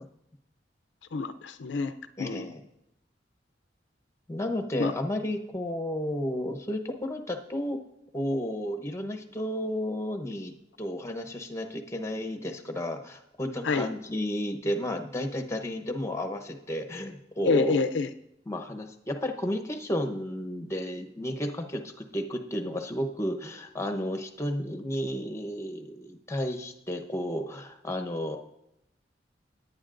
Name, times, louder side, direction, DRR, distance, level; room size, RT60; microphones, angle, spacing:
voice 1, 1.1-2.5 4.8-4.9 13.6-13.9 17.4-18.1, left 4 dB, 70° left, 10 dB, 0.5 m, -27 dB
voice 2, 2.2-2.6 4.3-7.8 8.1-17.8 18.5-28.4, left 1 dB, 15° left, 6 dB, 0.9 m, -32 dB
17.5 x 9.3 x 2.5 m, 0.85 s
head